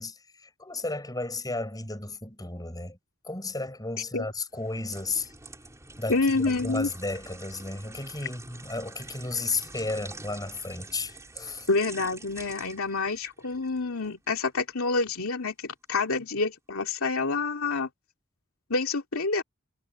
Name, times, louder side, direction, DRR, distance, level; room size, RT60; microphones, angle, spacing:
voice 1, 0.0-3.0 3.2-5.3 6.0-11.7, left 3 dB, 20° left, 7.6 m, -33 dB
sound 1, 4.5-14.5 14.9-15.1, right 2 dB, 15° right, 5.1 m, -46 dB
voice 2, 6.1-6.9 11.7-17.9 18.7-19.4, left 3 dB, 85° left, 2.4 m, -27 dB
head